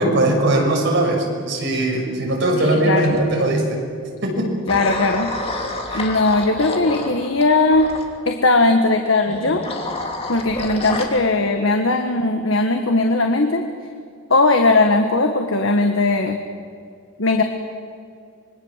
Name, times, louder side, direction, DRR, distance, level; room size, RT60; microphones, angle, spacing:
voice 1, 0.0-3.8 4.2-4.5 5.9-6.0, right 1 dB, 60° right, 1 dB, 6.3 m, -20 dB
voice 2, 2.6-3.2 4.7-5.3 5.9-7.9 8.2-9.7 10.3-13.6 14.3-16.4 17.2-17.4, left 2 dB, 70° left, 5 dB, 1.6 m, -18 dB
sound 1, 3.0-3.5 4.7-8.1 9.3-11.0, left 2 dB, 30° left, 3.0 m, -29 dB
26.0 x 23.0 x 7.5 m, 2.4 s
head